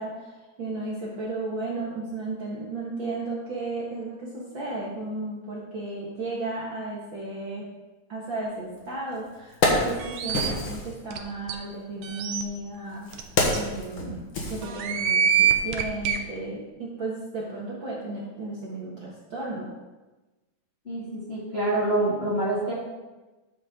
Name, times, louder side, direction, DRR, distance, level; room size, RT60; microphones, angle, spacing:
voice 1, 0.0-7.6 8.1-13.1 13.5-19.7, right 2 dB, 45° right, -5 dB, 2.0 m, -34 dB
Wood, 8.8-8.9 9.3-10.9 11.9-15.2 15.6-15.7, left 2 dB, 50° left, 2.0 m, -28 dB
sound 1, 10.0-10.5 11.1-11.2 11.5-11.6 12.0-12.4 13.1-13.2 13.5-13.6 14.6-16.2, right 8 dB, 70° right, 1.8 m, -24 dB
voice 2, 20.9-22.7, right 2 dB, 20° left, -8 dB, 2.3 m, -26 dB
12.5 x 7.0 x 3.7 m, 1.1 s
omnidirectional pair, 3.5 m